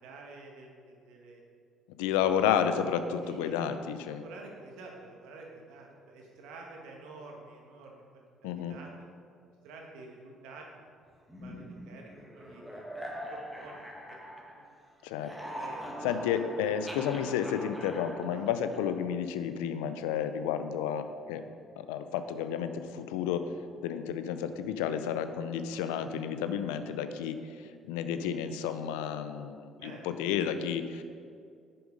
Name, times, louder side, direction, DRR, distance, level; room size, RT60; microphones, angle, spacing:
voice 1, 0.0-1.4 2.0-2.1 3.2-3.7 4.1-8.9 9.6-10.7 11.4-14.2 14.5-14.6 15.5-16.1 18.3-18.5 20.0-20.2 29.8-30.1, right 3 dB, 80° right, 0 dB, 1.4 m, -49 dB
voice 2, 2.0-4.2 8.4-8.8 15.0-15.3 16.0-21.4 21.8-23.5 23.8-31.0, left 8 dB, 85° left, 10 dB, 0.5 m, -31 dB
sound 1, 11.3-14.8 15.1-19.1, equal, ahead, 1.7 m, -43 dB
7.3 x 7.0 x 5.2 m, 2.3 s
supercardioid pair, 65°, 0 cm